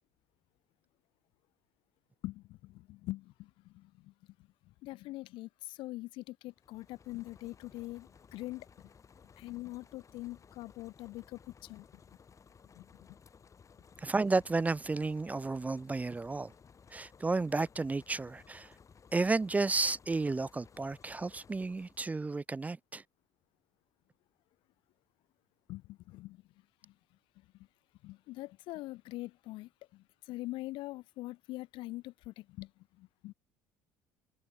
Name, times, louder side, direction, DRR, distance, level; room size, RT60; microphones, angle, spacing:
voice 1, 2.2-4.1 4.7-8.7 9.4-11.9 12.7-12.9 25.7-26.4 26.8-26.9 28.0-32.7 33.0-33.3, left 19 dB, 65° left, 0.6 m, -43 dB
sound 1, 6.5-22.3, left 6 dB, 35° left, 4.8 m, -59 dB
voice 2, 14.0-16.5 16.9-18.7 19.1-23.0, right 3 dB, 15° right, 0.4 m, -32 dB
hypercardioid pair, 70°, 9 cm